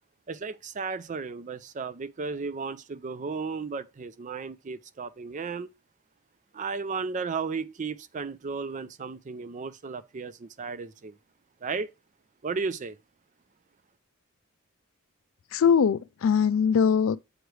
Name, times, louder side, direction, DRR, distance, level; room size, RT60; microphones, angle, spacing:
voice 1, 0.3-5.7 6.5-11.1 11.6-11.9 12.4-13.0, right 4 dB, 35° right, 0.4 m, -34 dB
voice 2, 15.5-17.2, left 7 dB, 70° left, 0.4 m, -22 dB
7.8 x 3.2 x 4.7 m
head